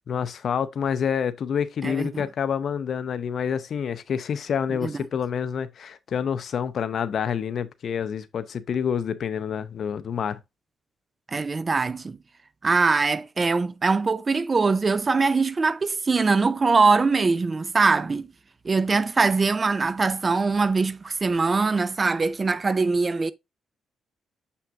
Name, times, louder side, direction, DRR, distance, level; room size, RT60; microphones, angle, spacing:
voice 1, 0.0-10.4, left 7 dB, 60° left, 0.7 m, -28 dB
voice 2, 1.8-2.3 4.8-5.0 11.3-12.2 12.6-18.3 18.6-23.3, right 4 dB, 30° right, 0.6 m, -22 dB
7.3 x 5.6 x 2.4 m
cardioid pair, 90°, 0 cm